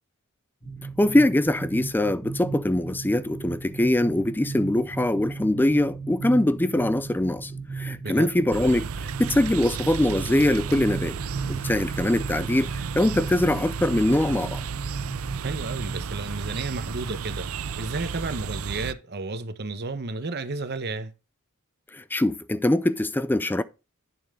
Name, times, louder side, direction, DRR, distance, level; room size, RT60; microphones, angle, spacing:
sound 1, 0.6-16.1, right 4 dB, 25° left, 2.2 m, -36 dB
voice 1, 1.0-11.2 11.5-14.6 21.9-23.6, left 1 dB, 10° left, 0.4 m, -23 dB
sound 2, 8.5-18.9, right 5 dB, 70° right, 0.5 m, -33 dB
voice 2, 15.4-17.4 17.8-21.1, right 3 dB, 50° right, 1.0 m, -32 dB
8.9 x 7.0 x 3.7 m
head